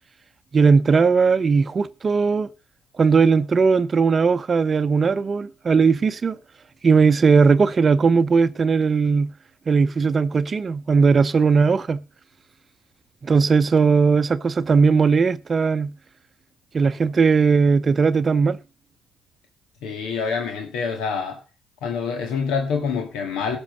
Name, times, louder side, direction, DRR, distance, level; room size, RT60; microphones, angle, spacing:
voice 1, 0.5-2.5 3.0-6.4 6.8-9.3 9.7-12.0 13.2-15.9 16.7-18.6, right 5 dB, 40° right, 0.7 m, -18 dB
voice 2, 19.8-21.4 21.8-23.6, left 5 dB, 75° left, 1.8 m, -26 dB
11.5 x 6.3 x 6.6 m
hypercardioid pair, 55°, 0 cm